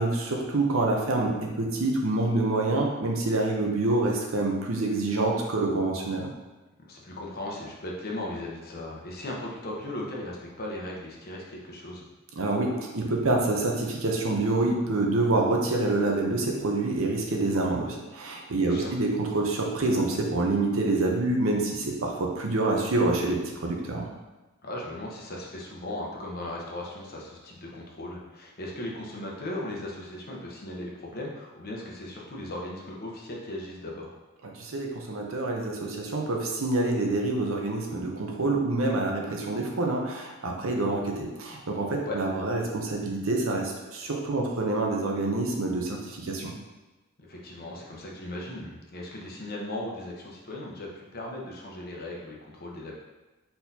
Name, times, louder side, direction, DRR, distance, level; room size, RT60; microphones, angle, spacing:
voice 1, 0.0-6.3 12.4-24.1 34.6-46.5, right 2 dB, 75° right, 0 dB, 0.8 m, -27 dB
voice 2, 6.8-12.0 18.6-18.9 24.6-34.1 42.0-42.2 47.2-52.9, left 1 dB, 50° left, -2 dB, 0.9 m, -37 dB
4.5 x 4.1 x 2.8 m, 1.1 s
head